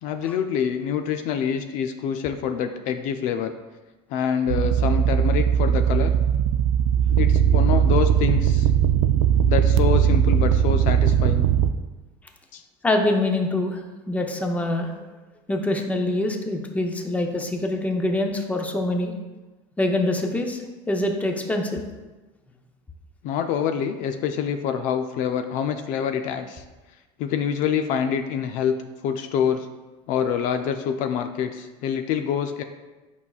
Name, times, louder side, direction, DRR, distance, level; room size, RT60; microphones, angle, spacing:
voice 1, 0.0-3.5 4.1-6.1 7.2-8.7 9.5-11.5 12.5-12.6 23.2-26.6 27.2-28.8 29.0-29.7 30.1-32.6, left 8 dB, 60° left, 7 dB, 0.4 m, -26 dB
sound 1, 4.5-11.7, right 9 dB, 80° right, 0.4 m, -19 dB
voice 2, 12.8-13.8 14.1-14.9 15.5-19.1 19.8-20.6 20.9-21.8, left 2 dB, 10° left, 3 dB, 0.7 m, -24 dB
8.3 x 5.4 x 2.4 m, 1.2 s
supercardioid pair, 120°, 15 cm